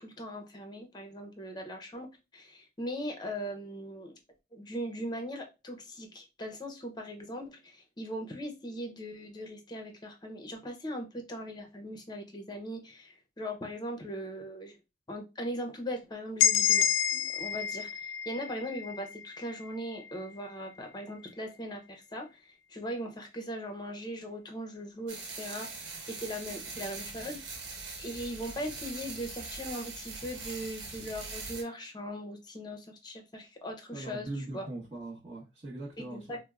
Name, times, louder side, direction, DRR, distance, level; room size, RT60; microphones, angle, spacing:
voice 1, 0.0-4.2 4.5-14.8 15.1-22.3 22.7-27.4 28.0-34.3 34.5-34.6 36.1-36.4, equal, 25° left, 0.6 m, -39 dB
sound 1, 16.4-20.2, left 9 dB, 90° left, 0.3 m, -29 dB
sound 2, 25.1-31.6, right 3 dB, 90° right, 0.9 m, -42 dB
voice 2, 33.9-36.4, right 2 dB, 35° right, 0.9 m, -41 dB
4.3 x 2.0 x 2.3 m
head